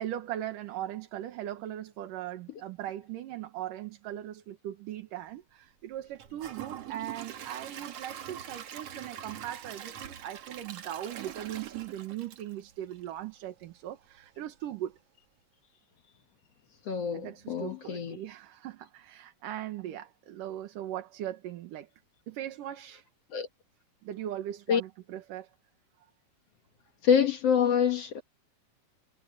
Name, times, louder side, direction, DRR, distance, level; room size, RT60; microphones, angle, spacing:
voice 1, 0.0-15.0 17.1-21.9 22.3-23.1 24.0-25.5, right 12 dB, 80° right, 3.0 m, -39 dB
Gurgling / Toilet flush / Trickle dribble, 6.2-13.2 13.6-13.7 14.2-14.3, right 10 dB, 55° right, 2.1 m, -43 dB
voice 2, 16.9-18.2 23.3-23.5 24.7-24.8 27.0-28.2, left 7 dB, 55° left, 2.1 m, -26 dB
omnidirectional pair, 3.8 m